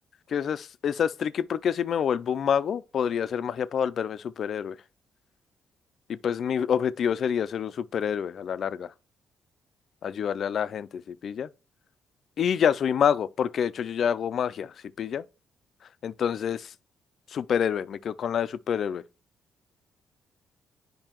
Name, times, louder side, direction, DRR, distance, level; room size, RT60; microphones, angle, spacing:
voice 1, 0.3-4.7 6.1-8.9 10.0-11.5 12.4-15.2 16.0-16.7 17.3-19.0, left 8 dB, 60° left, 0.3 m, -27 dB
8.8 x 5.2 x 2.9 m
cardioid pair, 90°, 0 cm